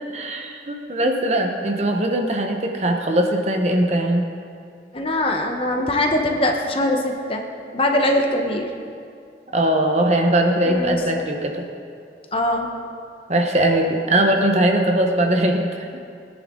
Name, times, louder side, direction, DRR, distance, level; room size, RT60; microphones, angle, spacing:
voice 1, 0.1-4.3 9.5-11.7 13.3-15.9, right 1 dB, 40° right, 3 dB, 1.1 m, -20 dB
voice 2, 4.9-7.4 7.7-8.7 10.7-11.2 12.3-12.7, left 1 dB, 30° left, 2 dB, 1.1 m, -22 dB
21.0 x 9.9 x 3.8 m, 2.3 s
head